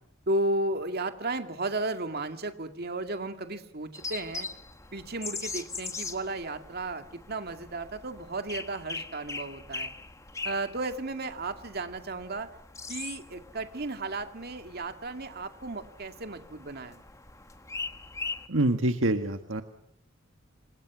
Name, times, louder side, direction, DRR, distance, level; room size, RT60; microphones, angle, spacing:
voice 1, 0.3-4.5 4.9-9.9 10.4-12.5 12.9-17.0, right 2 dB, 55° right, 7 dB, 2.3 m, -34 dB
sound 1, 3.9-18.5, left 4 dB, 15° left, 1.5 m, -41 dB
voice 2, 18.5-19.6, right 1 dB, 75° right, 7 dB, 1.6 m, -26 dB
28.5 x 26.0 x 6.2 m, 0.70 s
head